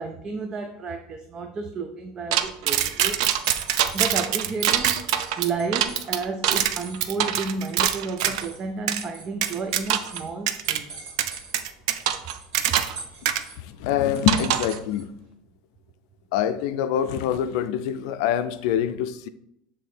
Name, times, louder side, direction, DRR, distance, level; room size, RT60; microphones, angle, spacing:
voice 1, 0.0-3.2 3.7-5.1 5.4-11.1 12.7-12.9, right 4 dB, 25° right, 5 dB, 0.4 m, -32 dB
sound 1, 2.3-8.4 8.9-9.0 9.4-10.2 10.5-10.8 11.2-13.0 13.2-13.4 14.3-14.8, right 10 dB, 85° right, 0.5 m, -24 dB
sound 2, 2.5-15.2, right 3 dB, 55° right, 2.5 m, -47 dB
voice 2, 13.6-15.1 16.3-19.3, left 9 dB, 70° left, 12 dB, 0.5 m, -25 dB
7.2 x 3.7 x 4.2 m, 0.77 s
cardioid pair, 165°, 3 cm